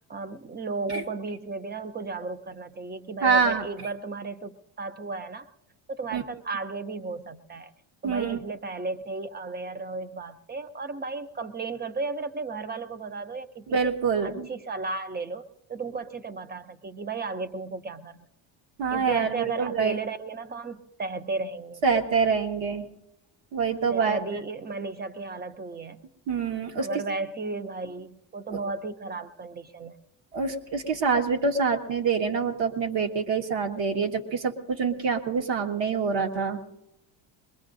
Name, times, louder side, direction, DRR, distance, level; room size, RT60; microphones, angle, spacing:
voice 1, 0.1-5.5 5.9-7.7 8.0-13.9 14.2-18.3 18.9-22.0 23.9-26.0 26.8-30.0, right 3 dB, 20° right, 12 dB, 0.5 m, -34 dB
voice 2, 3.2-3.6 6.1-6.2 8.0-8.4 13.7-14.5 18.8-20.0 21.8-22.9 23.5-24.2 26.3-26.9 30.3-36.6, right 5 dB, 65° right, 3 dB, 1.7 m, -26 dB
22.0 x 21.0 x 2.6 m, 0.90 s
cardioid pair, 135°, 49 cm